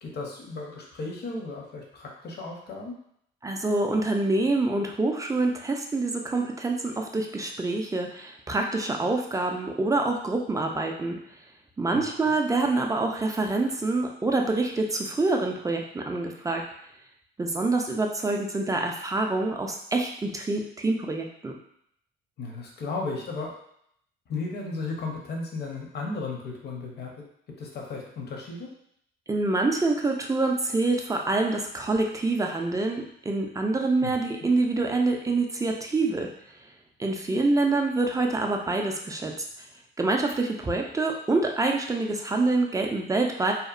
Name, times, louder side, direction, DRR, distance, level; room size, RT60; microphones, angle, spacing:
voice 1, 0.0-2.9 11.9-12.2 22.4-23.5 24.3-27.1 27.5-28.7 34.0-34.1 34.4-34.5, left 3 dB, 55° left, 0 dB, 0.7 m, -35 dB
voice 2, 3.4-11.2 11.8-16.6 17.4-21.5 29.3-36.3 37.0-39.7 40.0-43.5, right 2 dB, 15° right, 2 dB, 0.3 m, -26 dB
2.8 x 2.0 x 2.4 m, 0.71 s
cardioid pair, 90°, 20 cm